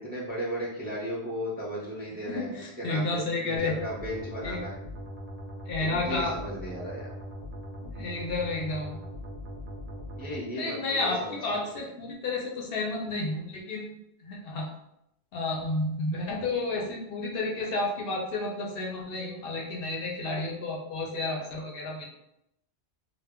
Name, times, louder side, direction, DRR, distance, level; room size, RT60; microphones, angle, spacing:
voice 1, 0.0-4.8 5.8-7.1 10.2-11.4 11.7-11.9, equal, 10° right, -6 dB, 0.5 m, -35 dB
voice 2, 2.2-3.7 4.4-4.6 5.7-6.3 7.9-9.0 10.5-14.7 15.3-22.1, left 2 dB, 65° left, -1 dB, 0.7 m, -31 dB
sound 1, 3.6-10.4, equal, 60° right, 0.7 m, -40 dB
2.1 x 2.0 x 3.5 m, 0.80 s
omnidirectional pair, 1.1 m